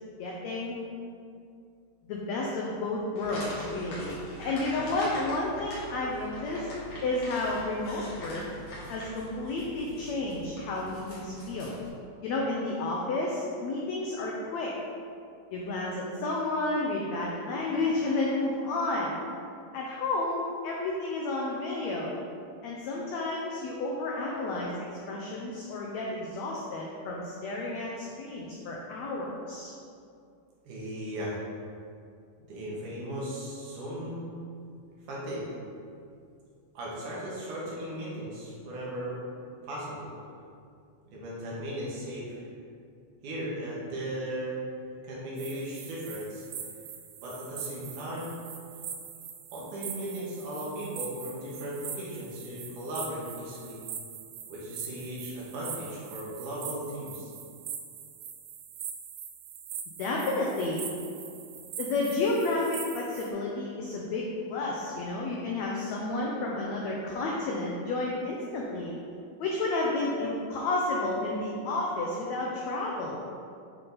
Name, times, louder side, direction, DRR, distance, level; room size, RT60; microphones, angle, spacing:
voice 1, 0.2-0.7 2.0-6.7 7.0-8.4 8.9-11.7 12.2-14.7 15.5-19.2 19.7-22.2 22.6-24.7 25.1-29.7 60.0-60.8 61.8-68.9 69.4-73.2, left 2 dB, 85° left, -3 dB, 1.5 m, -31 dB
sound 1, 3.2-11.9, equal, 70° left, 3.1 m, -43 dB
voice 2, 30.6-31.4 32.5-34.3 35.1-35.5 36.7-39.2 39.6-40.1 41.1-42.4 43.2-44.6 45.0-46.4 47.2-48.4 49.5-53.8 54.5-57.3, equal, 70° right, -6 dB, 2.7 m, -37 dB
sound 2, 45.4-63.3, right 8 dB, 90° right, 1.5 m, -42 dB
8.3 x 3.8 x 3.9 m, 2.4 s
omnidirectional pair, 3.9 m